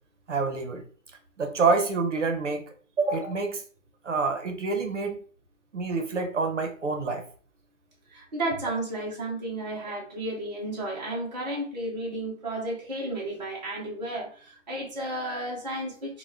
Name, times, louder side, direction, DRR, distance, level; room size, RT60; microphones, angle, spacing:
voice 1, 0.3-0.8 1.4-2.6 3.0-3.6 4.0-5.1 5.7-7.2, right 4 dB, 60° right, 5 dB, 0.9 m, -27 dB
voice 2, 8.1-16.2, right 1 dB, 30° right, -4 dB, 0.7 m, -33 dB
2.9 x 2.2 x 3.4 m, 0.43 s
figure-of-eight pair, 160°, 41 cm